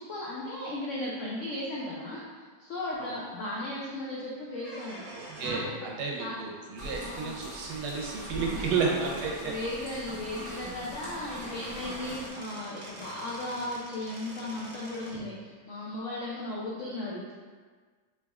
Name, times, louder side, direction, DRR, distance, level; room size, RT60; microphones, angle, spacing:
voice 1, 0.0-5.0 5.4-5.9 6.2-6.4 7.0-7.4 8.3-8.9 9.4-17.3, left 1 dB, 80° left, -4 dB, 0.6 m, -36 dB
sound 1, 4.5-5.7 7.5-7.6 8.5-8.6 9.0-9.1 9.4-9.5 10.9-11.0 11.3-15.3, right 1 dB, 55° right, 0.9 m, -45 dB
voice 2, 5.1-9.5 9.9-10.0, right 5 dB, 75° right, -1 dB, 1.1 m, -32 dB
sound 2, 6.8-12.3, equal, 35° right, 0.5 m, -41 dB
4.0 x 3.4 x 2.3 m, 1.5 s
omnidirectional pair, 1.9 m